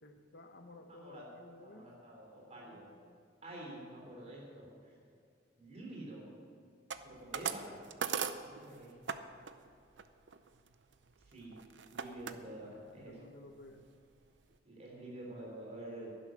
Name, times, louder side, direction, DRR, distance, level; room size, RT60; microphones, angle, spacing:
voice 1, 0.0-1.9 2.6-3.2 12.6-12.7 13.0-13.9, left 2 dB, 60° left, 6 dB, 1.0 m, -55 dB
voice 2, 0.9-1.2 1.6-2.9 3.4-4.7 5.6-6.3 7.0-7.9 8.5-9.2 11.3-11.5 11.9-13.1 14.6-16.1, right 1 dB, 35° right, -2 dB, 3.8 m, -48 dB
sound 1, 6.9-9.2 9.4-9.7 10.0-12.4 12.9-13.3 13.6-13.7 14.0-14.6, right 7 dB, 70° right, 0.6 m, -39 dB
11.0 x 11.0 x 6.4 m, 2.3 s
head